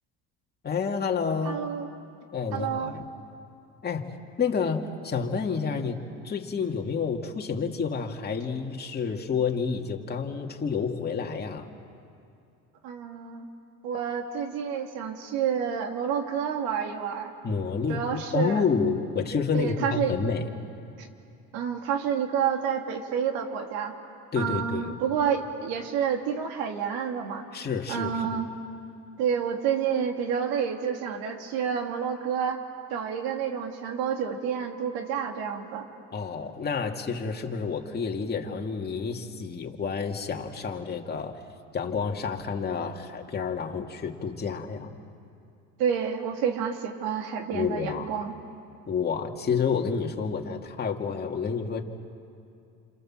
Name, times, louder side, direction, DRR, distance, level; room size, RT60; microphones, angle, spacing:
voice 1, 0.6-1.6 2.3-3.0 3.8-4.1 4.4-11.7 17.4-20.5 24.3-24.9 27.5-28.4 36.1-41.4 41.7-44.9 47.5-48.3 48.9-51.8, left 5 dB, 25° left, 1 dB, 2.3 m, -29 dB
voice 2, 1.4-1.9 2.5-2.9 12.8-13.4 13.8-17.3 17.9-18.6 19.5-20.1 21.0-21.1 21.5-23.9 24.4-27.4 27.9-28.5 29.2-32.6 32.9-35.9 45.8-48.3, right 7 dB, 70° right, 3 dB, 3.0 m, -29 dB
28.0 x 27.5 x 7.6 m, 2.6 s
supercardioid pair, 105°, 37 cm